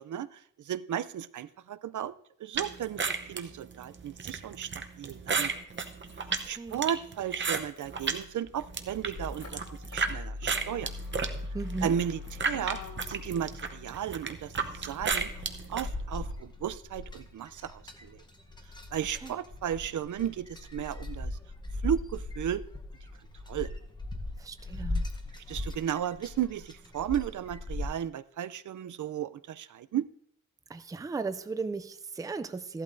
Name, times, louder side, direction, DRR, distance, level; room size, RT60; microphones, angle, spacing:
voice 1, 0.0-2.1 2.4-5.5 6.4-9.6 9.9-10.9 11.8-12.8 13.1-15.3 15.7-18.2 18.9-21.4 21.8-22.6 23.5-23.7 25.5-30.1, right 10 dB, 70° right, 0.5 m, -34 dB
sound 1, 2.6-8.2 8.6-10.1 10.5-15.9, right 5 dB, 35° right, 0.8 m, -33 dB
Motor vehicle (road), 5.3-16.4, left 3 dB, 80° left, 3.7 m, -43 dB
voice 2, 6.3-6.8 11.5-12.0 19.2-19.3 24.4-25.1 30.7-32.8, right 3 dB, 10° right, 0.4 m, -36 dB
sound 2, 15.0-27.9, left 2 dB, 15° left, 0.9 m, -38 dB
15.0 x 11.5 x 2.6 m
wide cardioid pair, 170°, 31 cm